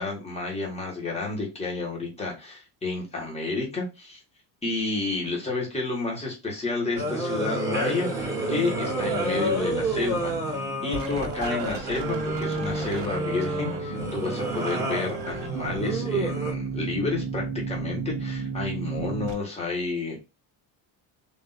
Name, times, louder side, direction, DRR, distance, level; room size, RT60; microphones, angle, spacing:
voice 1, 0.0-4.2 4.6-20.2, left 3 dB, 15° left, -2 dB, 1.4 m, -31 dB
sound 1, 7.0-16.5, right 1 dB, 5° right, 1.2 m, -29 dB
sound 2, 8.2-19.3, right 5 dB, 60° right, 1.0 m, -35 dB
3.6 x 2.7 x 4.0 m, 0.27 s
cardioid pair, 140°, 49 cm